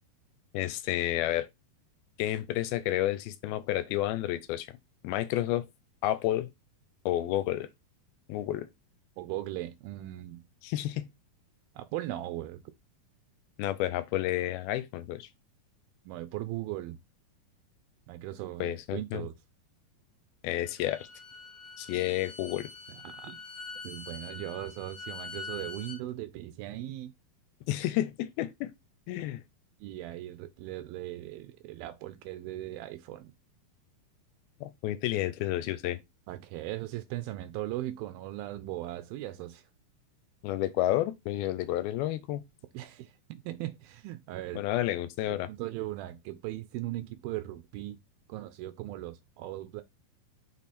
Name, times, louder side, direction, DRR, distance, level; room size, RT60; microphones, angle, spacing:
voice 1, 0.5-1.5 2.2-4.7 5.0-5.7 6.0-6.5 7.1-7.7 8.3-8.7 10.6-11.1 13.6-15.3 18.6-19.3 20.4-21.1 21.8-22.7 27.7-28.7 29.1-29.4 34.6-36.0 40.4-42.4 44.5-45.5, left 14 dB, 85° left, 2.4 m, -30 dB
voice 2, 9.2-10.4 11.8-12.6 16.1-17.0 18.1-19.3 23.0-23.4 23.8-27.1 29.8-33.3 36.3-39.6 42.7-44.6 45.5-48.0 48.3-49.8, right 15 dB, 80° right, 2.3 m, -38 dB
Bowed string instrument, 20.6-26.0, left 4 dB, 50° left, 1.8 m, -44 dB
6.3 x 3.7 x 4.2 m
omnidirectional pair, 4.5 m